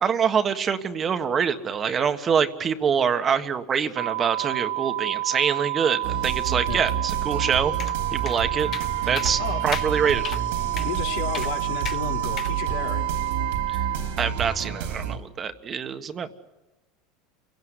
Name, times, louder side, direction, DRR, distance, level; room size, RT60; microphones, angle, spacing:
voice 1, 0.0-7.7 8.1-8.7 9.1-10.2 13.7-13.8 14.2-16.3, right 7 dB, 30° right, 8 dB, 1.5 m, -25 dB
sound 1, 4.0-14.0, right 16 dB, 60° right, 1.7 m, -29 dB
sound 2, 6.0-15.2, right 7 dB, 85° right, 3.8 m, -30 dB
sound 3, 7.8-8.0 8.3-8.4 8.7-8.9 9.2-9.3 9.7-9.9 10.2-10.4 10.8-10.9 11.3-11.5 11.8-12.0 12.4-12.5, left 9 dB, 35° left, 0.8 m, -33 dB
voice 2, 10.8-13.0, left 9 dB, 80° left, 2 dB, 3.7 m, -32 dB
29.0 x 17.5 x 9.8 m, 1.1 s
supercardioid pair, 125°, 0 cm